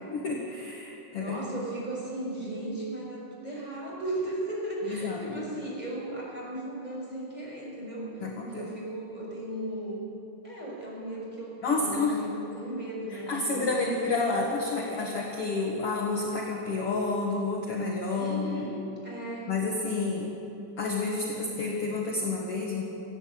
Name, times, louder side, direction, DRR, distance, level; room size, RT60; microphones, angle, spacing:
voice 1, 0.1-1.4 4.9-5.4 8.2-8.7 11.6-12.2 13.1-18.7 19.5-20.3 20.8-22.8, left 3 dB, 50° left, -1 dB, 2.3 m, -30 dB
voice 2, 1.1-8.1 8.4-10.0 10.4-13.6 18.1-19.5, right 1 dB, 10° right, -5 dB, 6.4 m, -36 dB
19.5 x 15.0 x 8.7 m, 3.0 s
omnidirectional pair, 3.9 m